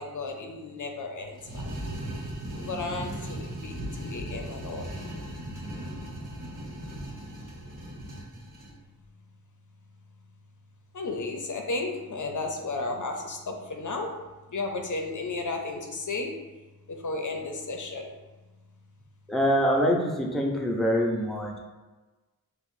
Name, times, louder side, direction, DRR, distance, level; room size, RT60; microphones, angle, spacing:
voice 1, 0.0-1.6 2.6-4.8 10.9-14.2 14.5-16.4 17.0-18.1, left 3 dB, 55° left, 2 dB, 0.5 m, -33 dB
sound 1, 1.4-8.7, right 1 dB, 60° right, 1.0 m, -37 dB
voice 2, 19.3-21.6, equal, ahead, -1 dB, 0.5 m, -25 dB
4.2 x 2.1 x 2.6 m, 1.2 s
cardioid pair, 45°, 36 cm